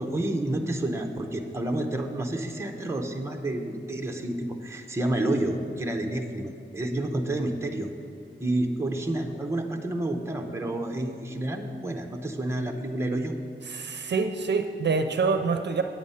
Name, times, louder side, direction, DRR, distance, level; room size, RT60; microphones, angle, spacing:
voice 1, 0.0-7.9 8.4-13.3, right 1 dB, 15° right, 3 dB, 0.7 m, -29 dB
voice 2, 13.7-15.8, right 4 dB, 60° right, 7 dB, 0.5 m, -26 dB
9.0 x 7.6 x 5.5 m, 2.4 s
wide cardioid pair, 150°, 20 cm